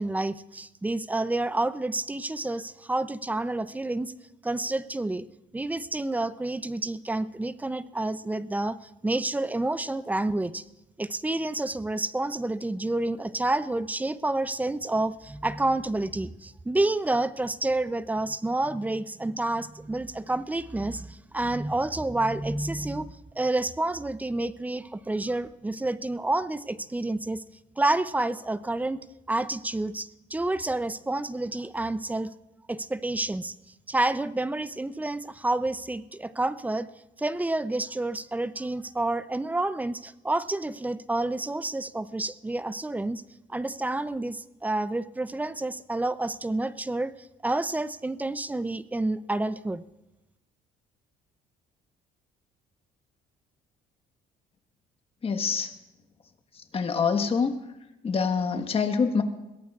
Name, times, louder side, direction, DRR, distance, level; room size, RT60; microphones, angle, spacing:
voice 1, 0.0-4.1 4.4-5.3 5.5-10.6 11.0-27.4 27.8-29.0 29.3-32.3 32.7-33.5 33.9-36.9 37.2-43.2 43.5-47.1 47.4-49.8, right 2 dB, 10° right, 15 dB, 0.5 m, -29 dB
voice 2, 55.2-55.7 56.7-57.6 58.0-59.2, left 5 dB, 35° left, 6 dB, 1.3 m, -25 dB
22.0 x 17.0 x 2.4 m, 0.95 s
cardioid pair, 110°, 17 cm